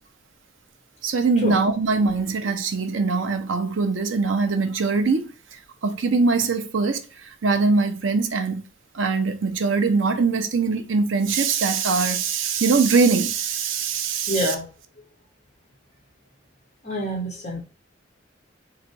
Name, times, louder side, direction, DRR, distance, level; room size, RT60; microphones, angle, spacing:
voice 1, 1.0-8.6 8.9-14.5, right 4 dB, 90° right, 0.7 m, -22 dB
voice 2, 14.3-14.7 16.8-17.6, left 1 dB, 35° left, 1.7 m, -26 dB
3.9 x 2.3 x 4.5 m
head